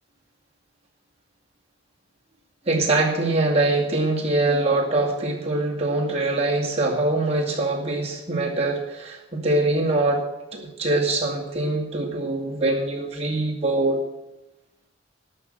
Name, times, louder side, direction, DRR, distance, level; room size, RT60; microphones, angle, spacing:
voice 1, 2.7-10.2 10.5-14.0, right 2 dB, 35° right, -2 dB, 2.3 m, -23 dB
11.5 x 6.6 x 7.6 m, 0.96 s
head